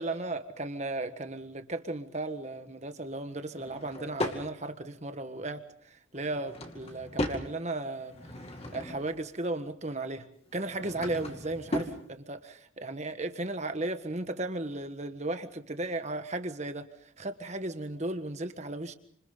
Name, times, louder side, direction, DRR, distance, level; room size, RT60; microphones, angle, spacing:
voice 1, 0.0-8.2 8.7-18.9, right 2 dB, 35° right, 1.5 m, -35 dB
Drawer open or close / Wood, 3.5-4.4 6.2-7.5 8.0-9.2 10.5-12.0, left 1 dB, 30° left, 2.4 m, -36 dB
29.5 x 26.5 x 4.0 m
head